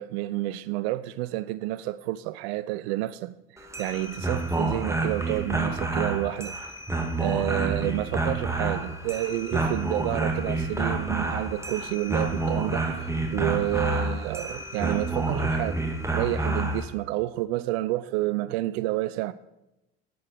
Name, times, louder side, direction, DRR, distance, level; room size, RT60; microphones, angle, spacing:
voice 1, 0.0-6.6 7.2-13.0 13.3-15.8 16.1-19.3, right 16 dB, 75° right, 0.5 m, -29 dB
sound 1, 3.6-16.8, right 2 dB, 10° right, 2.1 m, -29 dB
9.7 x 9.3 x 6.7 m
hypercardioid pair, 65°, 32 cm